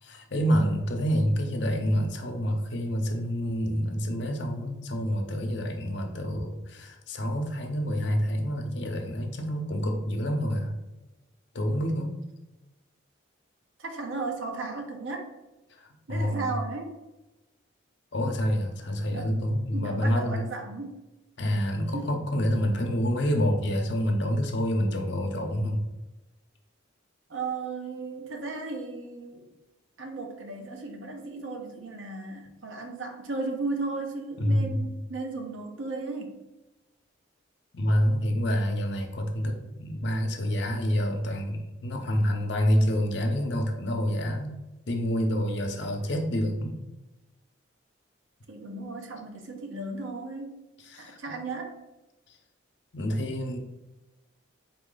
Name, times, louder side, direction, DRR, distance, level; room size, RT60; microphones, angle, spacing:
voice 1, 0.0-10.7 11.5-12.2 15.7-16.4 18.1-20.4 21.4-25.8 34.4-34.8 37.7-44.6 44.9-46.9 50.8-51.2 52.3-52.4 52.9-53.6, equal, 60° left, 3 dB, 0.7 m, -27 dB
voice 2, 13.8-15.3 16.1-16.9 19.1-19.3 19.7-21.0 21.9-22.0 27.3-29.5 30.0-36.4 48.5-50.6 51.0-51.8, right 3 dB, 70° right, 3 dB, 0.8 m, -35 dB
4.3 x 3.1 x 3.8 m, 1.0 s
head